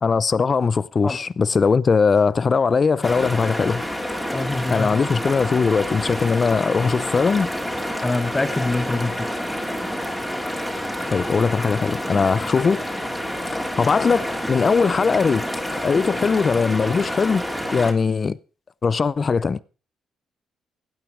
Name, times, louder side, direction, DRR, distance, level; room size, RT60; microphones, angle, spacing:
voice 1, 0.0-3.9 4.7-7.5 11.1-12.8 13.5-18.4 18.8-19.6, left 5 dB, 40° left, 0.6 m, -20 dB
sound 1, 3.0-17.9, equal, 5° left, 2.8 m, -28 dB
voice 2, 4.3-4.9 8.0-9.3, left 2 dB, 20° left, 1.3 m, -24 dB
16.5 x 9.2 x 5.0 m
cardioid pair, 90°, 0 cm